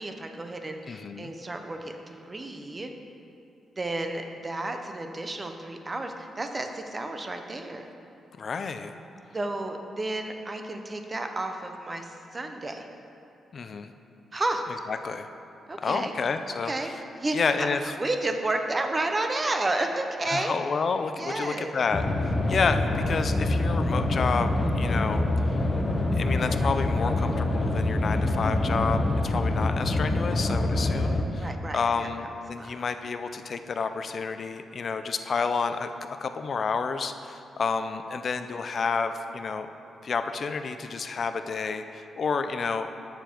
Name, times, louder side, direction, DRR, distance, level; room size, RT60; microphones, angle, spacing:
voice 1, 0.0-2.9 3.8-7.9 9.3-12.9 14.3-14.6 15.7-16.1 16.6-17.7 18.0-20.5 21.2-21.7 31.4-32.3 32.5-32.7, right 2 dB, 25° right, 5 dB, 0.8 m, -31 dB
voice 2, 0.9-1.3 8.4-8.9 13.5-13.9 14.9-15.3 15.8-16.7 17.3-17.9 20.3-25.6 26.1-31.5 31.7-35.9 36.2-39.7 40.0-42.9, left 5 dB, 50° left, 9 dB, 0.5 m, -30 dB
sound 1, 21.9-31.2, left 2 dB, 35° left, 0.9 m, -25 dB
9.2 x 6.9 x 4.5 m, 2.7 s
cardioid pair, 90°, 0 cm